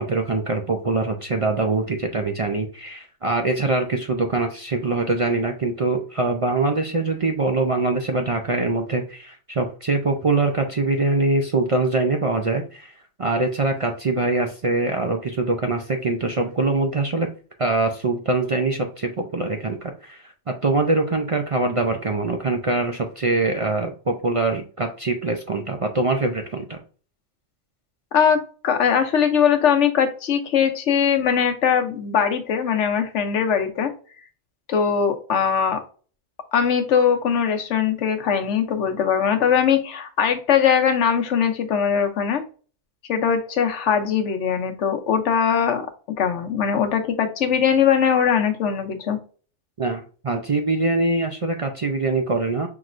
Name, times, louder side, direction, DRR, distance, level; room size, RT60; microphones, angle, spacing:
voice 1, 0.0-12.9 13.2-17.3 17.6-26.8 49.8-52.7, right 3 dB, 50° right, 3 dB, 0.4 m, -23 dB
voice 2, 28.1-33.9 34.7-35.8 36.5-42.4 43.1-45.9 46.2-49.2, left 7 dB, 85° left, 6 dB, 1.1 m, -21 dB
5.8 x 3.1 x 2.5 m, 0.38 s
omnidirectional pair, 1.2 m